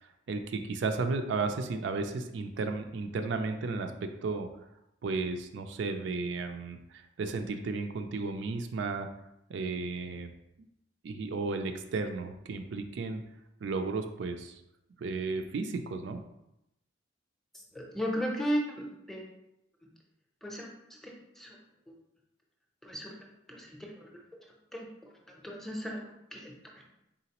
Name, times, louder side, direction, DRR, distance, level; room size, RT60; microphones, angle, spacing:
voice 1, 0.3-4.5 5.0-9.1 9.5-10.3 11.0-13.2 13.6-14.6 15.0-16.2, right 3 dB, 65° right, 6 dB, 0.4 m, -34 dB
voice 2, 17.7-19.2 20.4-20.7 21.0-21.6 21.9-22.0 22.8-23.2 23.5-24.1 24.7-24.9 25.3-26.5, equal, ahead, -1 dB, 0.6 m, -35 dB
3.9 x 3.8 x 2.9 m, 0.86 s
head